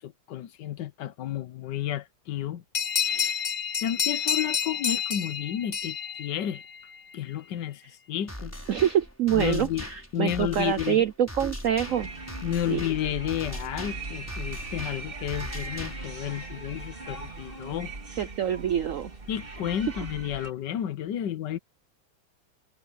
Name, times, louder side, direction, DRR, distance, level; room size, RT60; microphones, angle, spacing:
voice 1, 0.0-2.6 3.0-3.4 3.8-6.6 7.1-8.6 9.3-9.9 10.1-11.0 12.4-17.9 19.3-21.6, left 11 dB, 70° left, 1.5 m, -31 dB
sound 1, 2.7-7.0, left 7 dB, 90° left, 0.3 m, -29 dB
sound 2, 8.3-16.3, equal, 5° left, 5.7 m, -40 dB
voice 2, 8.7-12.1 12.7-12.8 18.2-19.1, right 10 dB, 70° right, 0.7 m, -26 dB
sound 3, 11.9-20.5, right 3 dB, 30° right, 2.1 m, -39 dB
omnidirectional pair, 2.1 m